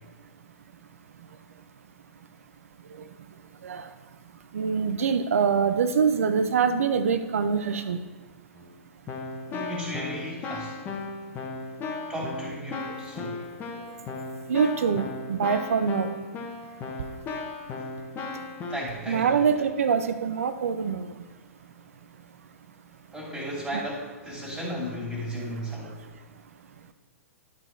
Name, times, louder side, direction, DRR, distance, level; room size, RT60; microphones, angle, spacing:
voice 1, 4.5-8.0 14.5-16.1 19.1-21.1 23.7-23.8, right 6 dB, 70° right, 10 dB, 0.6 m, -24 dB
Keyboard (musical), 8.6-8.7 9.1-18.8, left 3 dB, 25° left, 1.3 m, -36 dB
voice 2, 9.5-10.8 12.1-13.4 18.7-19.5 23.1-26.0, equal, 10° right, -5 dB, 2.6 m, -35 dB
11.5 x 4.2 x 4.5 m, 1.3 s
hypercardioid pair, 115°, 8 cm